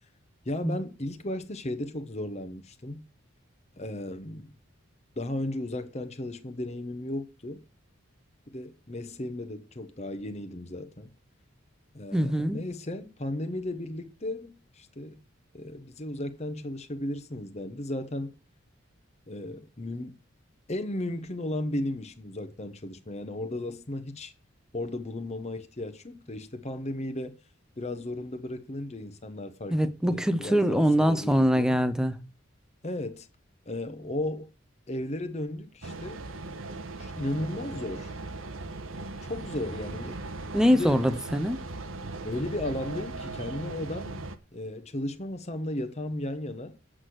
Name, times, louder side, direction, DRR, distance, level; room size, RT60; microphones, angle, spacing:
voice 1, 0.4-3.0 3.8-4.5 5.2-7.6 8.5-11.1 11.9-15.2 15.5-18.3 19.3-20.2 20.7-24.3 24.7-27.4 27.8-31.8 32.8-33.3 33.7-34.5 34.9-36.2 37.0-38.1 39.3-40.2 40.7-41.1 42.2-44.2 44.5-46.7, left 1 dB, 30° left, 1.0 m, -35 dB
voice 2, 12.1-12.6 29.7-32.2 40.5-41.6, equal, 5° right, 0.7 m, -23 dB
sound 1, 35.8-44.4, right 2 dB, 75° right, 1.2 m, -38 dB
8.2 x 6.3 x 7.9 m
head